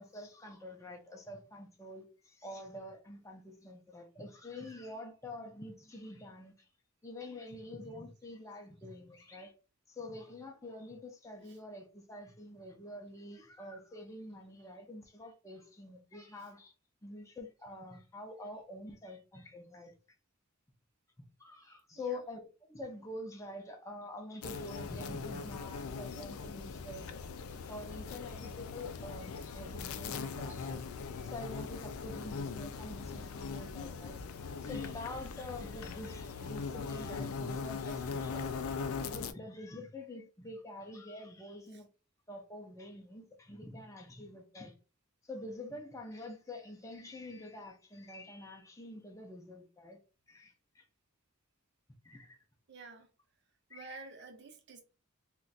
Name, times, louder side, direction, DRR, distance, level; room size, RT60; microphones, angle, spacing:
voice 1, 0.0-6.7 7.0-9.5 9.9-16.7 17.0-19.9 21.4-27.2 27.5-30.8 31.1-34.2 34.6-38.5 38.8-41.9 42.3-44.7 45.2-50.0 50.3-50.9 52.0-52.4 53.7-54.0, left 1 dB, 15° left, 0.4 m, -46 dB
sound 1, 24.4-39.3, left 5 dB, 80° left, 0.4 m, -40 dB
voice 2, 52.7-53.1 53.7-54.8, right 3 dB, 50° right, 0.6 m, -50 dB
2.5 x 2.2 x 3.9 m
head